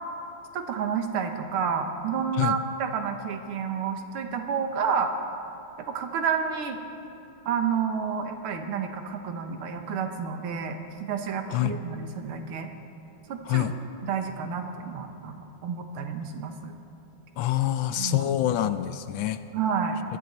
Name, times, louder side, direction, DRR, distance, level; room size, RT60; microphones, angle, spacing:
voice 1, 0.5-5.1 5.9-6.8 7.5-12.7 13.3-13.7 14.0-15.4 15.6-16.8 18.0-18.3 19.5-20.0, right 6 dB, 90° right, 5 dB, 2.0 m, -30 dB
voice 2, 17.4-19.4, left 12 dB, 75° left, 11 dB, 1.2 m, -26 dB
21.0 x 13.5 x 4.3 m, 2.9 s
omnidirectional pair, 2.3 m